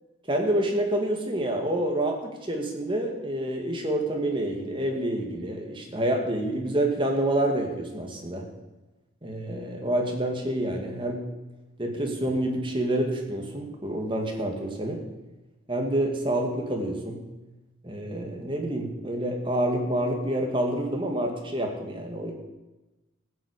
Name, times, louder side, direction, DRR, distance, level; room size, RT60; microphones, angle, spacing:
voice 1, 0.3-8.4 9.2-11.2 11.8-15.0 15.7-17.2 17.8-22.4, right 1 dB, 25° right, 2 dB, 2.1 m, -28 dB
15.0 x 7.6 x 8.4 m, 1.1 s
head